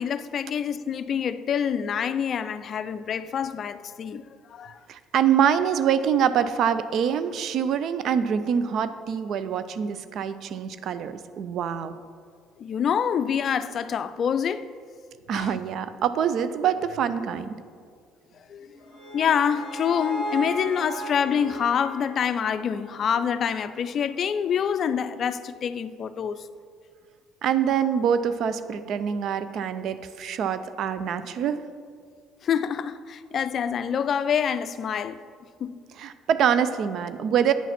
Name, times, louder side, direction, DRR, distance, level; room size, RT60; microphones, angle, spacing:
voice 1, 0.0-4.2 4.5-4.8 12.6-14.6 15.3-15.5 18.5-18.7 19.1-26.4 32.4-35.2 35.6-35.8, left 8 dB, 50° left, 0.3 m, -26 dB
voice 2, 4.9-11.9 15.3-17.5 27.4-31.7 36.0-37.5, right 8 dB, 60° right, 0.4 m, -25 dB
sound 1, 18.5-23.7, right 1 dB, 85° right, 1.9 m, -36 dB
9.3 x 4.1 x 5.8 m
hypercardioid pair, 65°, 0 cm